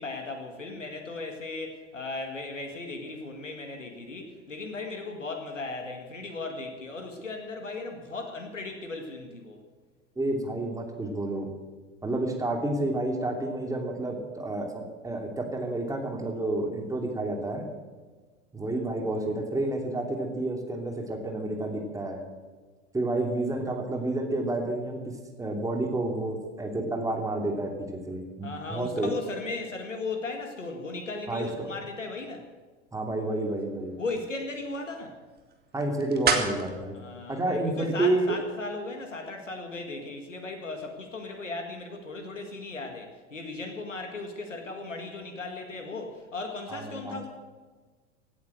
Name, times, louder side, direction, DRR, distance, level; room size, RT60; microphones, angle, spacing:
voice 1, 0.0-9.6 28.4-32.4 34.0-35.2 36.9-47.3, left 3 dB, 90° left, 4 dB, 2.0 m, -37 dB
voice 2, 10.2-11.5 12.0-17.6 18.5-22.2 22.9-25.0 25.4-27.7 28.1-29.1 31.3-31.7 32.9-33.9 35.7-36.9 37.3-38.4 46.7-47.2, right 2 dB, 10° right, 2 dB, 2.9 m, -30 dB
sound 1, 33.3-38.4, right 5 dB, 25° right, 2.3 m, -35 dB
16.5 x 9.8 x 7.8 m, 1.4 s
figure-of-eight pair, 85°, 36 cm